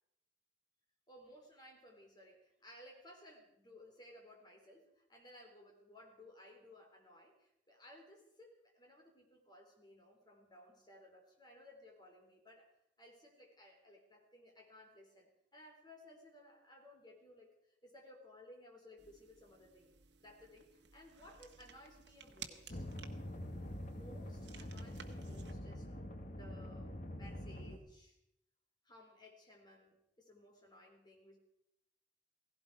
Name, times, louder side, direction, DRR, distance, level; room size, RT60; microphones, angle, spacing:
voice 1, 1.1-12.7 13.0-19.9 20.2-22.9 23.9-28.2 28.8-31.4, left 1 dB, 25° left, 1 dB, 3.9 m, -59 dB
sound 1, 19.0-25.5, right 7 dB, 70° right, 1.4 m, -56 dB
sound 2, 22.7-27.8, left 1 dB, 45° left, 1.7 m, -45 dB
16.5 x 16.5 x 4.9 m, 0.79 s
head